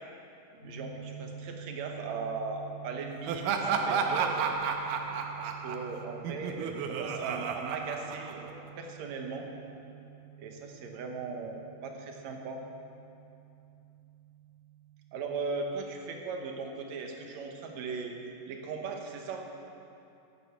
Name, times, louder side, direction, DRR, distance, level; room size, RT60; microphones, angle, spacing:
voice 1, 0.5-4.5 5.4-9.5 10.4-12.6 15.1-18.2 18.5-19.5, right 4 dB, 65° right, 2 dB, 2.2 m, -38 dB
sound 1, 0.6-16.2, right 9 dB, 70° left, 4.0 m, -49 dB
Laughter, 3.3-8.7, right 6 dB, 85° right, 2.5 m, -32 dB
11.0 x 9.7 x 7.4 m, 2.7 s
omnidirectional pair, 3.8 m